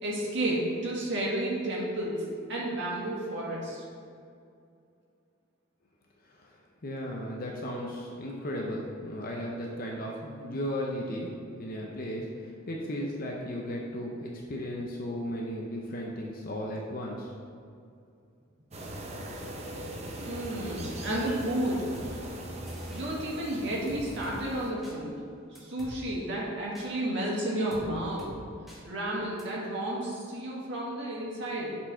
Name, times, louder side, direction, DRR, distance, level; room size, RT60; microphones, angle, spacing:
voice 1, 0.0-2.2 2.5-3.8 20.2-22.4 22.9-25.2 25.6-28.3 28.8-31.8, right 1 dB, 60° right, -4 dB, 1.6 m, -32 dB
voice 2, 6.8-17.3, equal, 45° left, -1 dB, 0.7 m, -35 dB
sound 1, 18.7-24.7, right 1 dB, 30° right, 0.7 m, -40 dB
sound 2, 22.0-22.1 22.7-23.0 23.9-24.4 24.8-25.0 25.6-25.9 26.8-26.9 27.7-27.9 28.2-28.3 28.7-28.8 29.4-29.5, equal, ahead, 1.4 m, -46 dB
7.0 x 4.5 x 4.4 m, 2.4 s
head